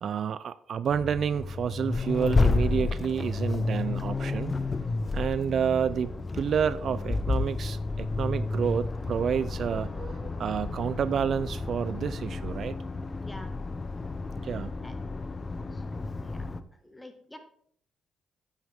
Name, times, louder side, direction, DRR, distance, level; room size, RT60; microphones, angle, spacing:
voice 1, 0.0-4.5 5.1-12.8 14.4-14.7, right 7 dB, 60° right, 0.4 m, -29 dB
Accelerating revving vroom, 0.9-16.6, left 3 dB, 30° left, 0.6 m, -31 dB
voice 2, 15.7-16.4 16.8-17.4, left 1 dB, 10° left, 1.6 m, -48 dB
9.1 x 9.0 x 3.5 m
cardioid pair, 90°, 0 cm